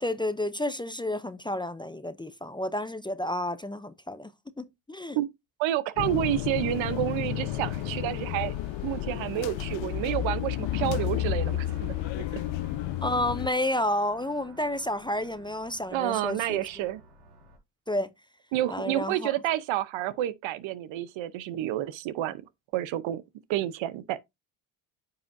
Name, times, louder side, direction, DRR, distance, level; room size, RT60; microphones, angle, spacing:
voice 1, 0.0-4.3 4.6-5.2 13.0-16.7 17.9-18.1 18.7-19.3, left 1 dB, 10° left, 0.5 m, -30 dB
voice 2, 5.6-8.5 8.8-12.4 15.9-17.0 18.5-22.4 22.7-23.2 23.5-24.2, right 13 dB, 70° right, 0.8 m, -29 dB
sound 1, 6.0-13.5, left 14 dB, 70° left, 0.6 m, -31 dB
sound 2, 7.3-17.6, right 4 dB, 90° right, 4.8 m, -52 dB
9.2 x 5.7 x 2.6 m
supercardioid pair, 80°, 48 cm